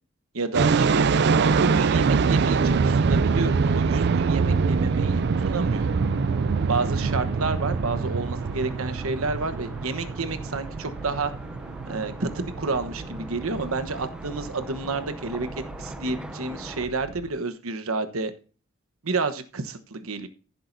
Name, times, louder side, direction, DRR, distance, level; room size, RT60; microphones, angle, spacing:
voice 1, 0.3-1.1 1.4-5.9 6.7-11.3 11.9-18.3 19.0-20.3, right 3 dB, 85° right, 10 dB, 1.1 m, -30 dB
sound 1, 0.5-17.3, right 5 dB, 55° right, 0.4 m, -25 dB
sound 2, 1.1-16.9, equal, 5° right, 0.6 m, -43 dB
15.0 x 7.6 x 2.7 m, 0.37 s
head